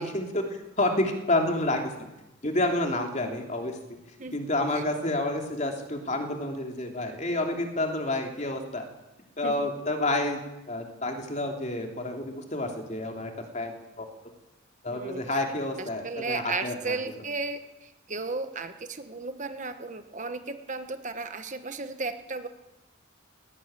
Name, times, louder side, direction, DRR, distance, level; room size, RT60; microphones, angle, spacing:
voice 1, 0.0-1.8 2.4-3.8 4.3-8.8 9.4-10.4 10.7-14.1 14.8-17.2, left 1 dB, 35° left, 3 dB, 3.2 m, -29 dB
voice 2, 14.9-15.4 16.0-22.5, right 3 dB, 35° right, 8 dB, 1.2 m, -34 dB
18.5 x 18.0 x 9.1 m, 0.99 s
head